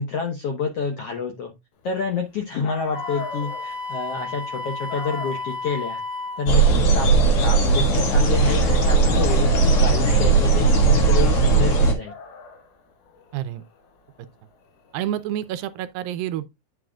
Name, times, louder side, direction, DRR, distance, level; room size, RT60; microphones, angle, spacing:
voice 1, 0.0-1.5 1.8-6.0 6.4-7.1 7.4-12.1, left 4 dB, 70° left, 1.4 m, -28 dB
Dog, 2.3-2.4 2.6-8.7 9.0-15.8, left 4 dB, 85° left, 3.7 m, -41 dB
Wind instrument woodwind instrument, 2.9-6.5, left 3 dB, 50° right, 1.5 m, -32 dB
sound 1, 6.5-11.9, right 4 dB, 50° left, 2.3 m, -17 dB
voice 2, 13.3-13.6 14.9-16.5, right 12 dB, 80° right, 2.2 m, -28 dB
9.6 x 6.3 x 2.3 m
omnidirectional pair, 4.3 m